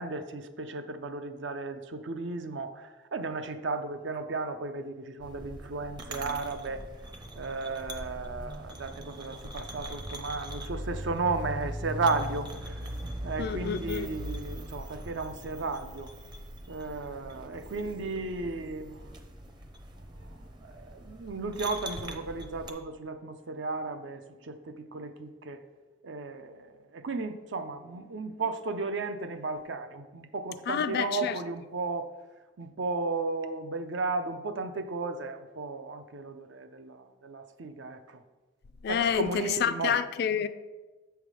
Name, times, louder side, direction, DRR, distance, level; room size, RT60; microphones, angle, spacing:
voice 1, 0.0-6.8 7.4-12.8 13.2-16.1 16.7-19.1 20.8-25.6 26.0-32.1 32.6-38.2 38.9-40.0, right 3 dB, 70° right, 0.6 m, -34 dB
sound 1, 5.2-22.7, right 1 dB, 25° right, 0.6 m, -41 dB
voice 2, 13.4-14.1 30.7-31.4 38.8-39.3 39.6-40.5, left 7 dB, 60° left, 0.4 m, -28 dB
7.3 x 3.5 x 6.2 m
head